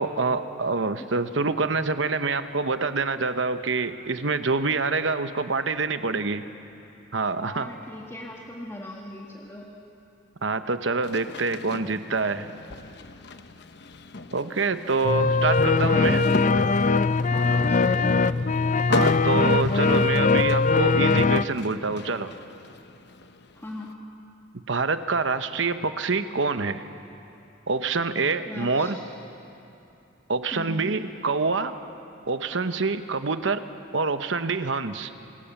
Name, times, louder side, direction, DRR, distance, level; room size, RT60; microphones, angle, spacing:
voice 1, 0.0-6.4 7.1-7.7 10.4-12.5 14.3-16.2 18.9-22.3 24.7-26.8 27.7-29.0 30.3-31.7 32.3-33.7 33.9-35.1, right 4 dB, 70° right, 10 dB, 1.0 m, -26 dB
voice 2, 7.3-9.7 15.9-16.9 17.3-18.2 23.5-24.0 28.5-29.0 30.5-31.0, left 1 dB, 15° left, -2 dB, 1.8 m, -39 dB
Lima construccion, 11.0-23.9, left 3 dB, 60° left, 1.0 m, -37 dB
sound 1, 15.0-21.4, left 4 dB, 40° left, 0.5 m, -21 dB
26.5 x 23.0 x 7.2 m, 2.9 s
head